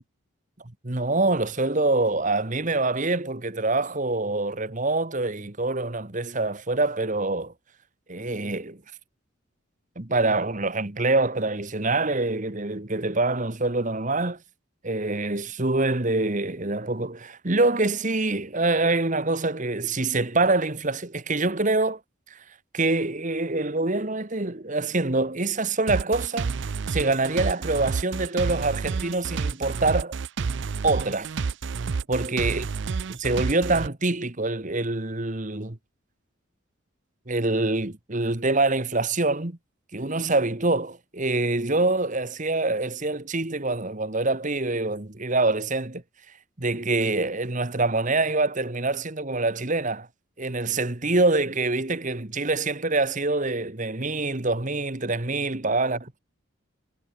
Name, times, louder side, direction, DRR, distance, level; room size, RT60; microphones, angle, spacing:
voice 1, 0.8-7.5 8.1-8.8 9.9-14.4 14.8-22.0 22.3-22.4 22.7-26.5 26.9-30.1 30.8-31.3 32.1-32.6 33.1-35.8 37.3-39.6 39.9-46.0 46.6-50.1 50.4-56.2, right 2 dB, 35° right, 1.5 m, -25 dB
sound 1, 25.9-33.9, right 5 dB, 55° right, 0.5 m, -29 dB
head